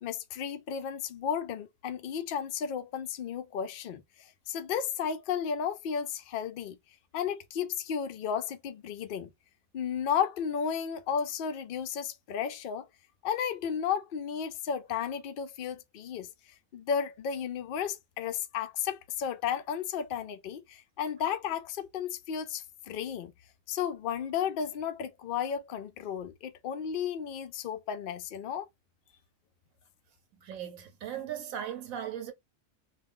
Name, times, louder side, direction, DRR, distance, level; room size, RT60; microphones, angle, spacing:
voice 1, 0.0-6.8 7.1-9.3 9.7-12.9 13.2-16.3 16.7-23.3 23.7-28.7, left 8 dB, 70° left, 0.5 m, -33 dB
voice 2, 30.3-32.3, right 9 dB, 85° right, 1.1 m, -38 dB
2.3 x 2.3 x 3.5 m
omnidirectional pair, 1.4 m